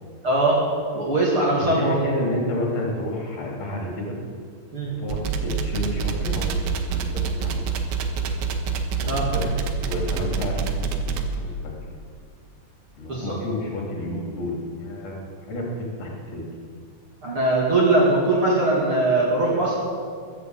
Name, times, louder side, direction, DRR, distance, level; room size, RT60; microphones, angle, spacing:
voice 1, 0.2-0.6 0.9-2.1 4.7-4.9 9.1-9.2 13.1-13.4 17.2-19.7, right 2 dB, 35° right, -5 dB, 2.7 m, -21 dB
voice 2, 1.6-4.2 4.9-7.9 9.0-9.5 9.8-11.7 13.0-16.4, left 1 dB, 40° left, -1 dB, 3.7 m, -30 dB
sound 1, 5.1-11.3, right 5 dB, 85° right, 3.2 m, -26 dB
21.0 x 7.6 x 8.0 m, 2.2 s
omnidirectional pair, 4.9 m